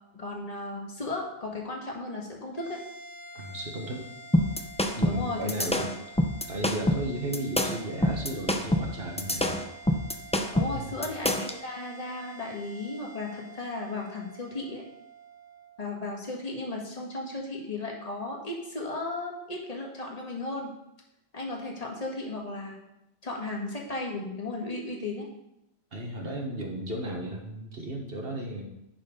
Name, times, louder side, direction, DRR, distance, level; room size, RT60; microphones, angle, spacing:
voice 1, 0.1-2.8 5.0-5.7 10.5-14.8 15.8-20.7 21.3-22.8 23.2-25.3, left 2 dB, 35° left, -1 dB, 1.6 m, -35 dB
sound 1, 2.5-17.1, right 2 dB, 40° right, 1.2 m, -48 dB
voice 2, 3.3-4.1 4.9-5.9 6.5-9.7 10.7-11.0 25.9-28.6, right 1 dB, 55° right, 1 dB, 1.5 m, -34 dB
sound 2, 4.3-11.6, left 1 dB, 10° left, 0.3 m, -26 dB
10.0 x 4.4 x 5.1 m, 0.85 s
omnidirectional pair, 1.2 m